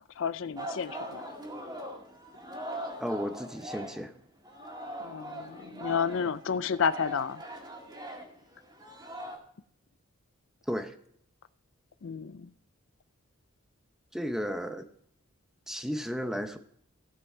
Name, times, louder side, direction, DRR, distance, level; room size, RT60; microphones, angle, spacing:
voice 1, 0.2-1.2 5.0-7.4 12.0-12.5, left 6 dB, 65° left, 0.4 m, -31 dB
Singing, 0.6-4.2 4.4-9.4, equal, 20° right, 2.0 m, -41 dB
voice 2, 3.0-4.1 10.7-10.9 14.1-14.9 15.7-16.6, equal, ahead, 0.7 m, -33 dB
16.5 x 6.0 x 4.5 m
head